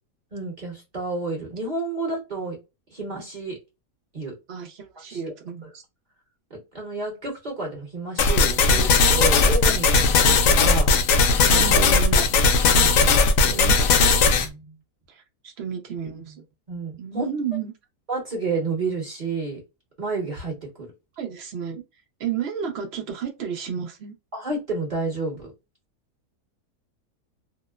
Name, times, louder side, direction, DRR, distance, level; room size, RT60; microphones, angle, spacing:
voice 1, 0.3-2.6 2.9-3.6 4.1-4.3 5.1-5.3 6.5-10.9 11.5-11.9 12.7-13.6 14.3-14.7 16.7-17.3 18.1-19.6 20.0-20.9 24.3-25.5, right 3 dB, 35° right, 0.9 m, -30 dB
voice 2, 4.5-5.8 11.6-12.5 13.4-13.9 15.1-16.4 17.0-17.7 21.2-21.8 22.2-24.1, right 7 dB, 60° right, 0.6 m, -32 dB
sound 1, 8.2-14.5, left 4 dB, 70° left, 0.8 m, -18 dB
2.8 x 2.0 x 2.2 m
omnidirectional pair, 1.7 m